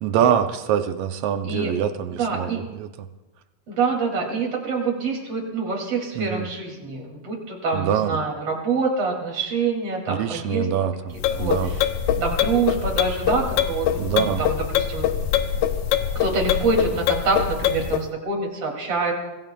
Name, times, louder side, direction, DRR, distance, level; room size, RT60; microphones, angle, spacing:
voice 1, 0.0-3.1 6.2-6.5 7.7-8.1 10.1-11.7 14.0-14.4, right 9 dB, 75° right, 9 dB, 1.5 m, -24 dB
voice 2, 1.4-1.8 2.1-2.6 3.7-10.7 11.3-11.9 12.2-15.1 16.2-19.1, right 4 dB, 50° right, 0 dB, 3.5 m, -26 dB
sound 1, 11.1-18.1, left 9 dB, 80° left, 2.2 m, -23 dB
24.5 x 18.0 x 2.3 m, 1.1 s
omnidirectional pair, 3.3 m